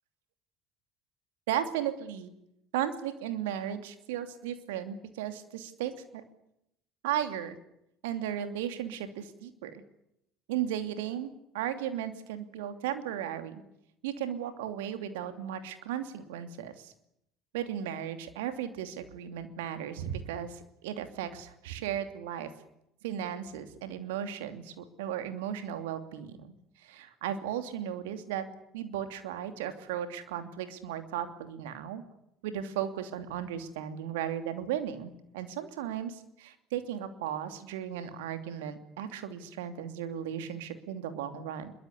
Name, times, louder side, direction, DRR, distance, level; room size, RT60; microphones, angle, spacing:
voice 1, 1.5-2.3 2.7-5.9 7.0-7.6 8.0-9.8 10.5-11.3 11.5-13.6 14.0-16.9 17.5-22.5 23.0-26.5 26.8-28.5 28.7-32.0 32.4-41.7, right 10 dB, 70° right, 8 dB, 2.8 m, -35 dB
25.0 x 22.5 x 8.4 m, 0.79 s
figure-of-eight pair, 60°, 0 cm